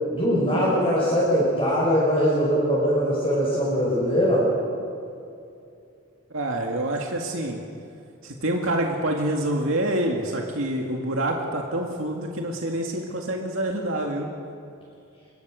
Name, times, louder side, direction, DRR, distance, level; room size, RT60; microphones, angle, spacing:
voice 1, 0.1-4.5, equal, 25° left, -7 dB, 6.1 m, -21 dB
voice 2, 6.3-7.6 8.2-14.3, right 1 dB, 70° right, 0 dB, 2.2 m, -27 dB
26.5 x 23.0 x 6.5 m, 2.6 s
head